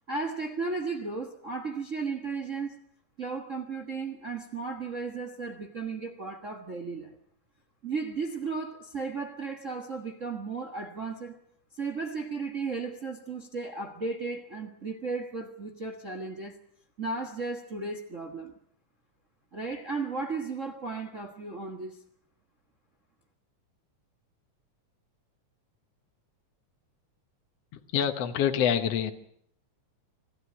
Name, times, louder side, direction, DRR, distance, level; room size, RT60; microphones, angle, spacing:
voice 1, 0.1-2.8 3.2-7.2 7.8-11.4 11.7-16.6 17.0-18.5 19.5-22.0, right 4 dB, 35° right, 1.3 m, -35 dB
voice 2, 27.7-29.1, left 9 dB, 60° left, 2.0 m, -26 dB
25.5 x 13.5 x 9.7 m
omnidirectional pair, 3.5 m